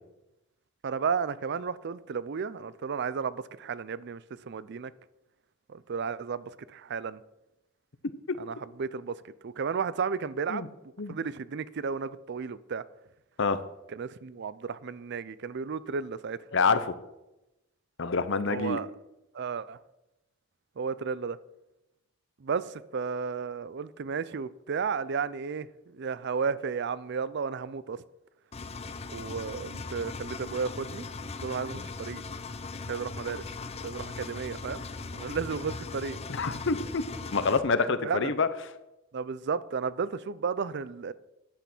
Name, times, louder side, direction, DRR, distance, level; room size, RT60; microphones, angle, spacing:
voice 1, 0.8-4.9 5.7-7.2 8.4-10.7 11.1-12.8 13.9-16.4 18.5-18.9 19.3-19.8 20.8-21.4 22.4-28.0 29.1-31.1 31.4-32.2 32.9-33.4 33.8-34.8 35.1-36.2 38.0-38.3 39.1-41.1, right 5 dB, 55° right, 18 dB, 0.5 m, -33 dB
voice 2, 16.5-16.9 18.0-18.8 36.3-38.5, left 4 dB, 65° left, 12 dB, 0.8 m, -27 dB
Engine, 28.5-37.6, left 3 dB, 30° left, 0.6 m, -39 dB
10.0 x 8.4 x 6.1 m, 0.94 s
head